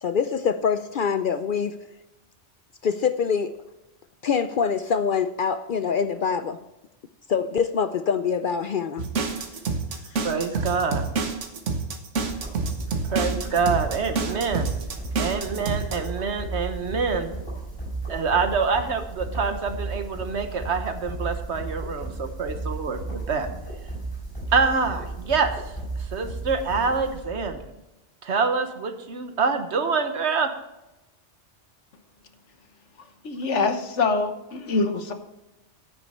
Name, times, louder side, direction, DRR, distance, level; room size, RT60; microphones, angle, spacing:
voice 1, 0.0-1.8 2.8-3.6 4.2-6.6 7.3-9.1 10.1-10.2, left 6 dB, 60° left, 11 dB, 0.6 m, -25 dB
sound 1, 9.0-16.1, right 4 dB, 85° right, 1.5 m, -28 dB
voice 2, 10.2-11.0 13.1-14.7 15.2-17.3 18.1-23.5 24.5-25.5 26.1-27.6 28.2-30.5, right 5 dB, 70° right, 7 dB, 1.4 m, -26 dB
sound 2, 12.2-27.6, right 3 dB, 20° left, 4.2 m, -34 dB
voice 3, 33.2-35.1, left 4 dB, 80° left, 7 dB, 1.4 m, -24 dB
9.6 x 9.5 x 4.3 m, 0.96 s
omnidirectional pair, 1.2 m